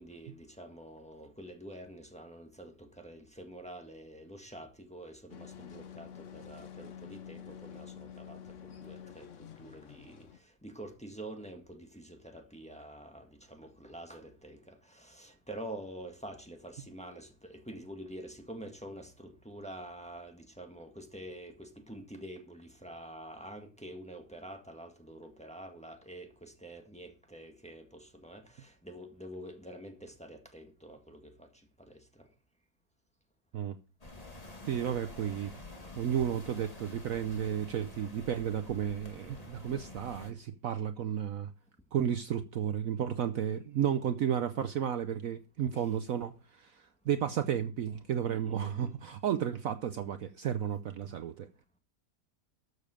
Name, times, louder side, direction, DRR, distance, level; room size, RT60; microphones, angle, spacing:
voice 1, 0.0-10.3 10.6-31.5 31.8-32.0 45.7-45.9 48.2-48.9, right 1 dB, 5° left, 1.6 m, -47 dB
sound 1, 5.3-10.4, left 8 dB, 55° left, 1.1 m, -48 dB
sound 2, 34.0-40.3, left 2 dB, 20° left, 2.0 m, -49 dB
voice 2, 34.7-35.6 36.0-41.5 41.9-51.5, right 9 dB, 65° right, 1.0 m, -33 dB
13.0 x 7.1 x 5.0 m
omnidirectional pair, 1.8 m